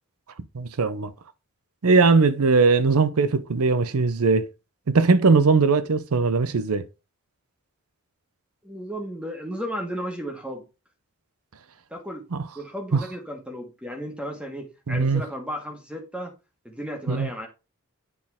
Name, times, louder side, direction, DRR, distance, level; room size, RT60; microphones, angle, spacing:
voice 1, 0.5-1.1 1.8-4.5 4.9-6.8 12.3-12.4 12.9-13.0 14.9-15.2 17.1-17.3, right 4 dB, 80° right, 0.6 m, -20 dB
voice 2, 8.6-10.6 11.9-12.2 12.5-16.3 16.6-17.5, equal, 5° right, 1.4 m, -34 dB
8.4 x 4.2 x 3.6 m
head